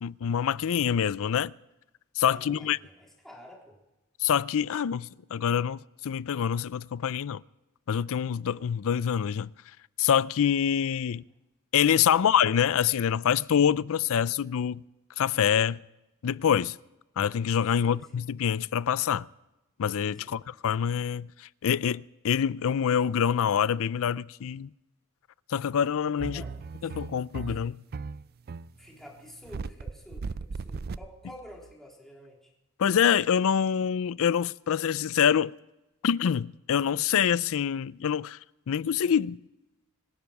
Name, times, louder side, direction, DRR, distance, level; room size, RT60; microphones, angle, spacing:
voice 1, 0.0-1.5 2.2-2.8 4.2-7.4 7.9-9.5 10.0-11.2 11.7-14.8 15.2-15.8 16.2-16.8 17.2-19.3 19.8-24.7 25.5-26.4 26.8-27.8 32.8-35.6 36.0-38.4 38.7-39.4, left 8 dB, 65° left, 0.4 m, -26 dB
voice 2, 2.3-3.8 17.8-18.2 20.2-20.4 26.3-26.6 26.8-27.0 27.5-27.6 28.8-32.5, equal, ahead, 3.9 m, -50 dB
sound 1, 26.2-31.7, right 4 dB, 45° right, 0.4 m, -37 dB
25.5 x 10.5 x 4.7 m
head